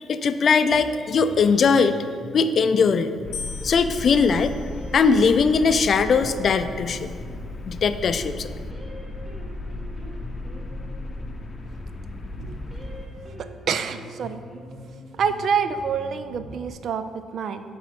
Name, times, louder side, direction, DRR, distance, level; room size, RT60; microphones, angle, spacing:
voice 1, 0.0-2.0 2.3-3.1 3.6-4.6 4.9-7.1 7.7-8.5, left 5 dB, 55° left, 10 dB, 0.4 m, -20 dB
sound 1, 0.7-16.7, left 1 dB, 20° right, 1.7 m, -42 dB
sound 2, 3.2-13.1, left 2 dB, 30° left, 0.8 m, -36 dB
sound 3, 3.3-5.5 6.3-6.9, left 6 dB, 80° left, 0.7 m, -41 dB
voice 2, 13.4-14.4 15.2-17.6, right 6 dB, 65° right, 10 dB, 0.4 m, -27 dB
11.0 x 4.2 x 4.3 m, 2.2 s
cardioid pair, 90°, 0 cm